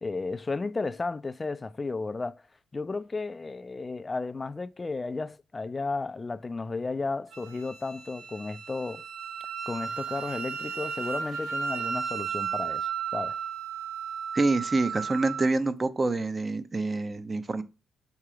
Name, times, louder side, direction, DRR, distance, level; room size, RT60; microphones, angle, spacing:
voice 1, 0.0-2.4 2.7-9.0 9.7-13.4, left 3 dB, 25° left, 0.3 m, -33 dB
Wind instrument woodwind instrument, 7.3-15.5, right 7 dB, 80° right, 0.9 m, -34 dB
voice 2, 14.3-17.6, right 3 dB, 25° right, 0.6 m, -27 dB
6.6 x 2.9 x 4.9 m
cardioid pair, 90°, 0 cm